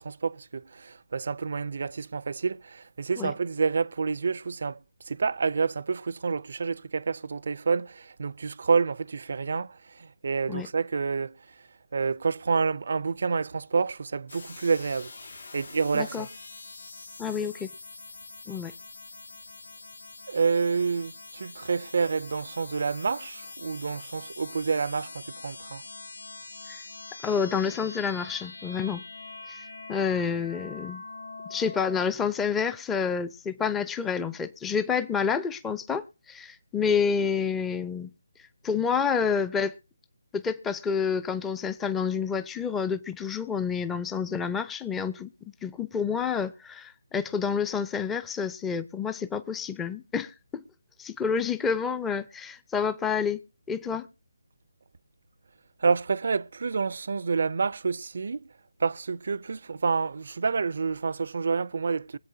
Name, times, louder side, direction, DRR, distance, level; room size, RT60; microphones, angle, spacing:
voice 1, 0.0-4.8 5.1-11.4 11.9-15.1 15.5-16.3 20.3-25.8 55.8-58.5 58.8-62.2, right 5 dB, 55° right, 0.5 m, -28 dB
sound 1, 14.3-32.1, left 3 dB, 75° left, 1.6 m, -44 dB
voice 2, 15.9-16.3 17.2-17.7 18.5-18.7 26.7-26.8 27.2-29.0 29.5-31.0 31.5-38.1 38.4-39.8 40.3-50.6 51.0-53.4 53.7-54.1, left 6 dB, 10° left, 0.6 m, -29 dB
24.0 x 8.4 x 2.7 m
figure-of-eight pair, 155°, 0 cm